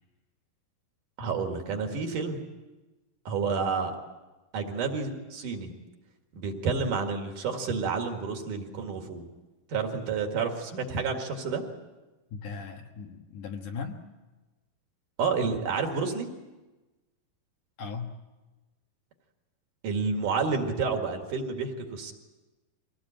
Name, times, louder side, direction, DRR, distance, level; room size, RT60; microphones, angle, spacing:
voice 1, 1.2-2.4 3.2-3.9 4.5-5.7 6.3-9.3 9.7-11.6 15.2-16.3 19.8-22.1, right 5 dB, 60° right, 3 dB, 3.3 m, -30 dB
voice 2, 12.3-14.0 17.8-18.1, left 5 dB, 60° left, 3 dB, 2.6 m, -37 dB
24.0 x 18.0 x 8.8 m, 1.2 s
omnidirectional pair, 4.4 m